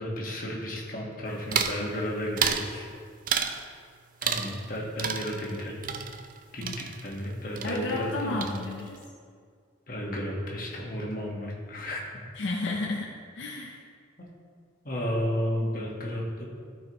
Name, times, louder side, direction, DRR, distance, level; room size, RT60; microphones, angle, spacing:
voice 1, 0.0-2.9 4.2-5.8 6.5-8.5 9.9-12.0 14.8-16.4, equal, 45° left, -3 dB, 1.2 m, -33 dB
sound 1, 1.5-1.8 2.4-2.7 3.3-3.6 4.2-4.7 5.0-7.3 7.6-8.1 8.4-9.0, right 7 dB, 45° right, 0.4 m, -31 dB
voice 2, 7.6-9.0 12.4-13.1 13.3-13.8, left 2 dB, 70° left, -1 dB, 0.5 m, -32 dB
12.5 x 4.5 x 3.0 m, 2.1 s
head